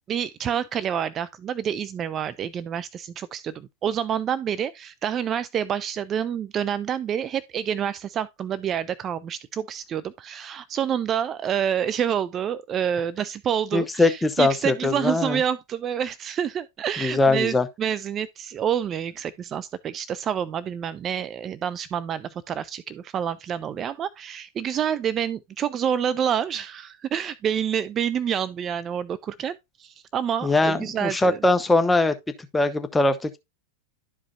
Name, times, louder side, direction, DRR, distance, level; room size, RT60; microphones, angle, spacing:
voice 1, 0.1-31.4, right 8 dB, 25° right, 0.4 m, -28 dB
voice 2, 13.7-15.4 17.0-17.7 30.4-32.1 32.5-33.4, left 2 dB, 10° left, 0.8 m, -21 dB
12.0 x 4.9 x 2.7 m
figure-of-eight pair, 90°, 0 cm